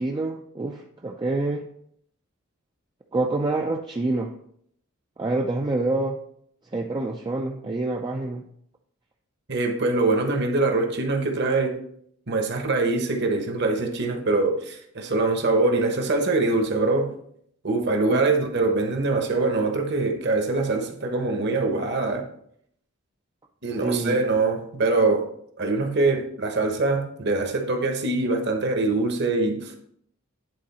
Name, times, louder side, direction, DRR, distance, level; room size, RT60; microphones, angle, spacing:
voice 1, 0.0-1.7 3.1-4.3 5.2-6.2 6.7-8.4 18.1-18.2 23.8-24.2, right 2 dB, 20° right, 1 dB, 0.4 m, -27 dB
voice 2, 9.5-11.7 12.3-17.1 17.6-22.2 23.6-25.3 25.6-29.7, right 3 dB, 50° right, 4 dB, 1.1 m, -23 dB
10.0 x 3.8 x 4.2 m, 0.68 s
head